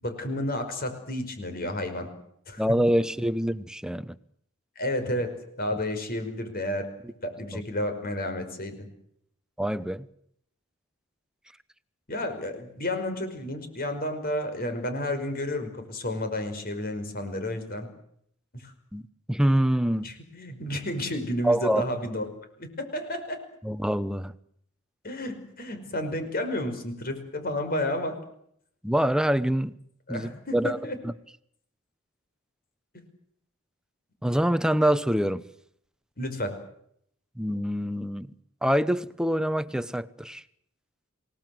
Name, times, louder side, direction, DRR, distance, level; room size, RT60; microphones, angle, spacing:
voice 1, 0.0-2.1 2.5-2.6 4.8-5.3 5.6-6.9 7.2-8.9 12.1-17.9 18.5-18.7 20.0-22.3 22.6-23.4 25.0-28.2 30.1-31.0 36.2-36.5, left 1 dB, 45° left, 5.5 m, -31 dB
voice 2, 2.6-4.2 7.5-7.6 9.6-10.1 18.9-19.0 19.3-20.1 21.4-21.8 23.6-24.3 28.8-29.8 30.1-30.8 31.0-31.1 34.2-35.4 37.4-38.3 38.6-40.4, equal, 5° right, 0.9 m, -25 dB
28.5 x 18.5 x 7.9 m
head